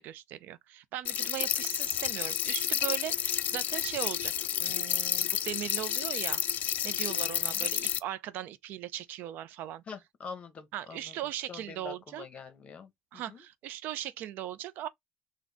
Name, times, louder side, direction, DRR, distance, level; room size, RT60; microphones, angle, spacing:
voice 1, 0.0-4.3 4.6-6.4 6.8-9.8 10.7-12.2 13.1-14.9, right 12 dB, 75° right, 0.5 m, -38 dB
sound 1, 1.0-8.0, left 11 dB, 55° left, 0.3 m, -31 dB
voice 2, 7.1-7.7 9.9-11.2 11.5-13.4, left 6 dB, 40° left, 1.0 m, -46 dB
3.8 x 2.2 x 3.4 m
cardioid pair, 120°, 3 cm